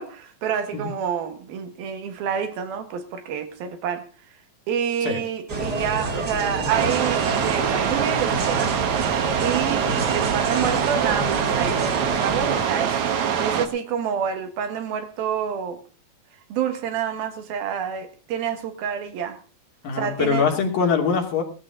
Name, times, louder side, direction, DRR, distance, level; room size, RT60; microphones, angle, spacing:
voice 1, 0.0-4.4 4.7-8.8 9.4-13.0 13.4-15.8 16.5-19.4 19.9-20.5, right 8 dB, 85° right, 3.6 m, -28 dB
sound 1, 5.5-12.6, right 3 dB, 35° right, 2.1 m, -28 dB
sound 2, 6.7-13.7, right 8 dB, 60° right, 2.5 m, -24 dB
voice 2, 19.8-21.4, left 5 dB, 70° left, 4.6 m, -23 dB
18.5 x 13.0 x 3.9 m
omnidirectional pair, 4.2 m